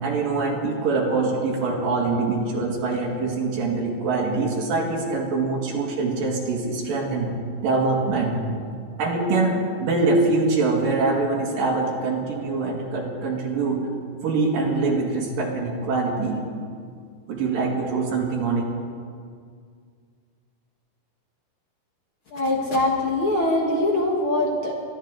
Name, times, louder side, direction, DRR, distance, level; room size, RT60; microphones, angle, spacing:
voice 1, 0.0-7.3 7.6-8.4 9.0-13.9 14.2-16.4 17.3-18.7, right 3 dB, 85° right, -1 dB, 3.7 m, -24 dB
voice 2, 22.3-24.7, left 1 dB, 50° left, -1 dB, 1.8 m, -22 dB
23.5 x 12.5 x 3.8 m, 2.1 s
omnidirectional pair, 3.9 m